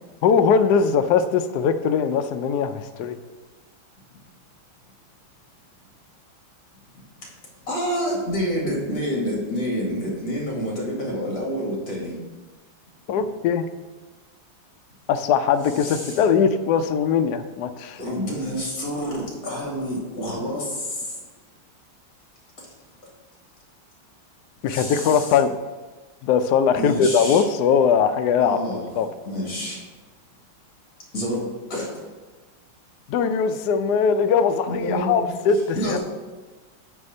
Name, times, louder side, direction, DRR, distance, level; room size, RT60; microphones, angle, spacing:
voice 1, 0.2-3.2 13.1-13.6 15.1-18.0 24.6-25.5 26.2-29.1 33.1-36.0, left 6 dB, 75° left, 8 dB, 0.9 m, -20 dB
voice 2, 7.7-12.2 15.8-16.2 18.0-21.2 22.6-22.7 24.7-25.3 26.8-27.4 28.4-28.9 29.2-29.8 31.1-31.9 34.7-35.2 35.7-36.0, equal, 45° left, -2 dB, 2.5 m, -28 dB
8.9 x 3.5 x 6.5 m, 1.3 s
omnidirectional pair, 2.3 m